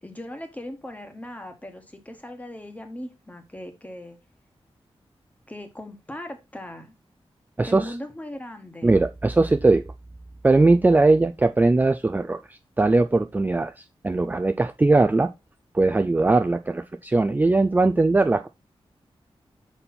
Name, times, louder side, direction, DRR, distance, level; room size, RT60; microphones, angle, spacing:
voice 1, 0.0-4.2 5.5-6.9 7.6-8.9, left 1 dB, 15° left, 1.3 m, -38 dB
voice 2, 7.6-7.9 8.8-9.8 10.4-15.3 15.7-18.5, right 3 dB, 15° right, 0.3 m, -20 dB
5.3 x 4.2 x 4.2 m
wide cardioid pair, 95°, 10 cm